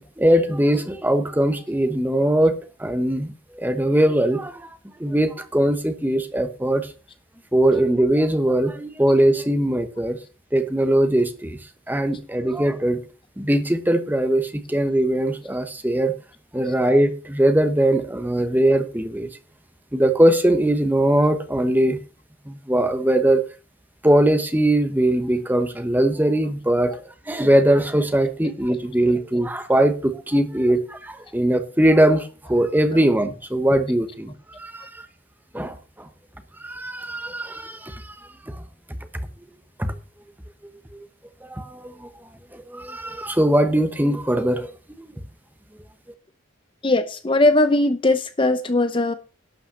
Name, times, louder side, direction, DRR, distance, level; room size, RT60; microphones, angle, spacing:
voice 1, 0.2-4.7 5.0-6.9 7.5-10.2 10.5-11.6 11.9-13.0 13.4-16.1 16.5-19.3 19.9-22.0 22.5-23.4 24.0-27.0 27.3-35.1 35.5-36.1 36.6-38.1 38.4-38.6 39.8-40.0 41.4-42.1 42.5-44.7 45.0-45.1, right 1 dB, 10° right, 1.0 m, -21 dB
voice 2, 46.8-49.1, left 2 dB, 25° left, 0.6 m, -19 dB
12.0 x 5.4 x 7.2 m
head